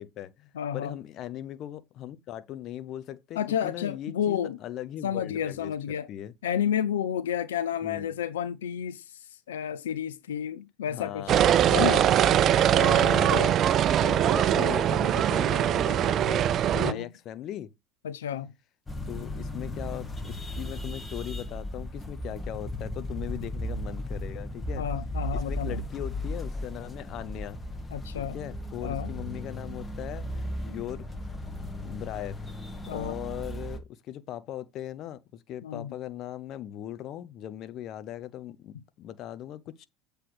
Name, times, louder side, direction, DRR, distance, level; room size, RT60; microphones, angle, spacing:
voice 1, 0.0-6.3 7.8-8.1 10.9-11.8 12.3-12.9 13.1-13.5 14.0-16.5 16.8-17.7 19.1-27.6 28.1-31.3 31.8-32.6 32.9-39.9, left 11 dB, 50° left, 0.8 m, -39 dB
voice 2, 0.5-1.0 3.4-4.6 5.0-6.1 6.4-11.2 11.7-12.1 12.7-13.5 16.7-17.1 18.0-18.5 24.8-25.8 27.9-28.4 28.8-29.1 32.9-33.2 35.6-35.9, left 9 dB, 80° left, 0.6 m, -31 dB
sound 1, 11.3-16.9, right 10 dB, 45° right, 0.5 m, -22 dB
sound 2, 18.9-33.8, left 1 dB, 15° left, 1.7 m, -36 dB
7.7 x 3.4 x 6.1 m
hypercardioid pair, 80°, 0 cm